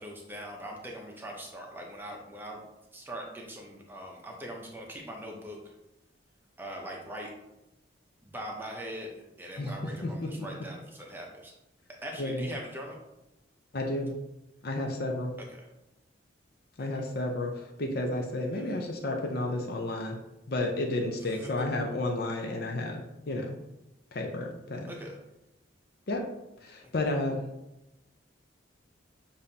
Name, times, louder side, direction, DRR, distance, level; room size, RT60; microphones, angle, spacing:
voice 1, 0.0-2.6 2.9-5.7 6.6-7.3 8.2-11.5 12.0-13.0 15.5-15.7 16.8-16.9 18.5-18.8 21.2-21.5 24.9-25.2 26.8-26.9, equal, 10° right, -1 dB, 0.7 m, -41 dB
voice 2, 10.0-10.3 12.2-12.5 13.7-14.1 14.6-15.3 16.8-20.2 20.5-23.6 24.1-24.9 26.1-26.3 26.6-27.4, left 2 dB, 55° left, 1 dB, 0.6 m, -32 dB
7.0 x 2.6 x 2.7 m, 0.94 s
head